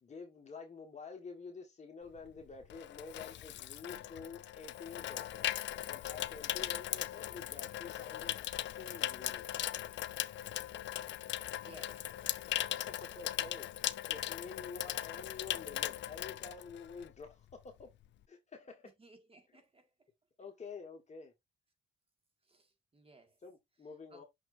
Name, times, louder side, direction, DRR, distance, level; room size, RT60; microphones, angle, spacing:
voice 1, 0.0-5.5 5.9-9.5 12.8-13.7 14.1-17.9 18.3-18.9 20.4-21.3 23.4-24.2, left 4 dB, 35° left, 1.6 m, -49 dB
Water tap faucet / Sink (filling or washing), 2.2-17.2 17.5-17.8, left 13 dB, 65° left, 0.5 m, -39 dB
voice 2, 11.6-12.1 18.8-19.9 22.4-23.4 24.1-24.2, right 2 dB, 30° right, 2.0 m, -59 dB
6.1 x 5.9 x 2.6 m
cardioid pair, 90°, 20 cm